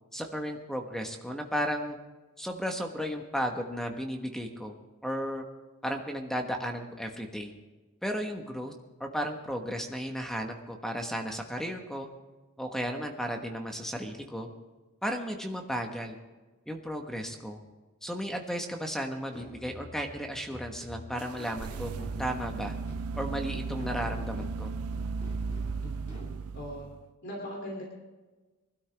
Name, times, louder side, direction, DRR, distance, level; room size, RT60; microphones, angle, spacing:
voice 1, 0.1-2.0 2.4-4.7 5.0-5.4 5.8-7.5 8.0-8.7 9.0-12.1 12.6-14.5 15.0-16.2 16.7-17.6 18.0-22.7 23.2-24.7, equal, ahead, 3 dB, 1.3 m, -34 dB
sound 1, 19.3-26.4, left 1 dB, 30° left, 3.0 m, -47 dB
sound 2, 21.2-27.1, right 4 dB, 90° right, 0.4 m, -36 dB
voice 2, 25.8-26.2 26.5-26.8 27.2-27.8, equal, 55° left, -2 dB, 2.9 m, -39 dB
23.0 x 12.5 x 3.5 m, 1.2 s
head